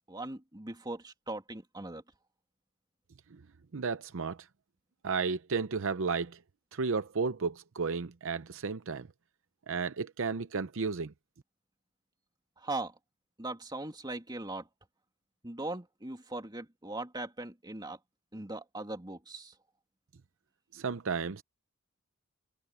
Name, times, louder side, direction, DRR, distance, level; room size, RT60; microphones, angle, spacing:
voice 1, 0.1-2.0 12.6-12.9 13.4-14.7 15.4-18.0 18.3-19.5, right 2 dB, 20° right, 2.6 m, -39 dB
voice 2, 3.7-4.4 5.0-6.4 6.7-9.1 9.7-11.1 20.7-21.4, right 5 dB, 60° right, 0.6 m, -33 dB
head